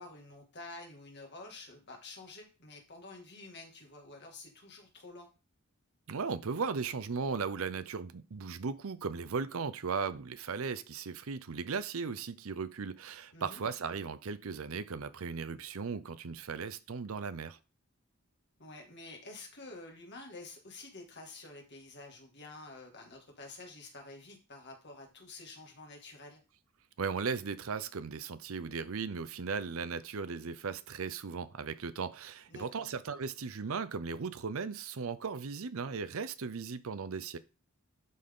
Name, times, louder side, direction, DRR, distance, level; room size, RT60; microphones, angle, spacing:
voice 1, 0.0-5.3 13.3-13.6 18.6-26.4 32.5-32.9, left 2 dB, 50° left, 2.1 m, -49 dB
voice 2, 6.1-17.6 27.0-37.4, right 5 dB, 70° right, 0.6 m, -37 dB
11.5 x 4.2 x 3.7 m
head